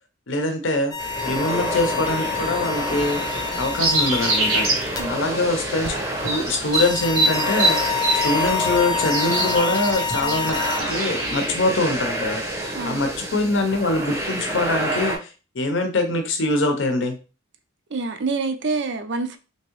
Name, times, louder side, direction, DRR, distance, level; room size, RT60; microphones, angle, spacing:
voice 1, 0.3-0.9 1.2-3.2 3.6-5.9 6.2-17.2, left 2 dB, 65° left, 0.6 m, -24 dB
sound 1, 0.9-5.0 5.8-5.9 6.7-10.8, left 6 dB, 20° left, 0.3 m, -27 dB
sound 2, 1.0-15.2, right 1 dB, 15° right, 0.6 m, -29 dB
sound 3, 1.2-11.4, right 2 dB, 90° right, 1.1 m, -27 dB
voice 2, 17.9-19.4, right 3 dB, 60° right, 0.4 m, -26 dB
3.5 x 2.9 x 3.0 m
head